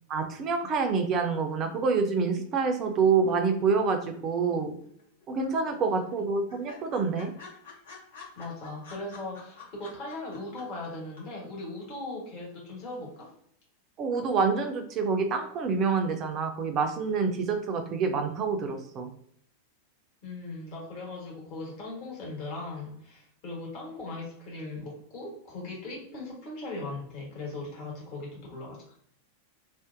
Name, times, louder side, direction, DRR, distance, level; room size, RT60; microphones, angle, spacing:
voice 1, 0.1-4.7 5.3-7.3 14.0-19.1, right 5 dB, 30° right, 6 dB, 0.4 m, -27 dB
sound 1, 4.8-5.5 5.7-5.8 6.1-6.2 6.5-10.9 11.2-11.3, left 5 dB, 65° left, 1.0 m, -48 dB
voice 2, 8.4-13.3 20.2-28.8, left 2 dB, 40° left, -3 dB, 1.2 m, -39 dB
2.6 x 2.1 x 2.5 m, 0.66 s
figure-of-eight pair, 90°, 0 cm